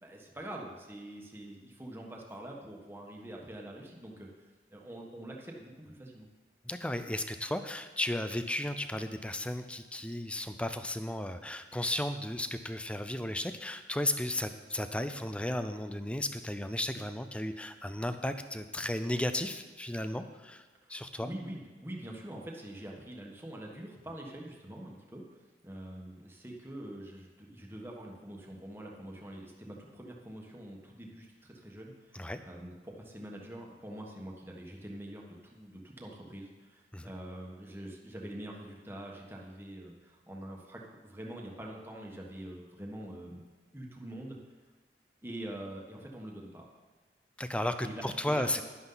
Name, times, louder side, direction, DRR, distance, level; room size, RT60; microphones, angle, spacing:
voice 1, 0.0-4.3 4.7-6.3 20.8-20.9 21.2-43.4 43.7-44.4 45.2-46.7 47.8-48.6, right 1 dB, 15° right, -1 dB, 1.4 m, -45 dB
voice 2, 6.6-21.3 32.1-32.4 36.9-37.1 47.4-48.6, left 1 dB, 5° left, 9 dB, 0.5 m, -34 dB
11.5 x 11.0 x 4.0 m, 1.3 s
head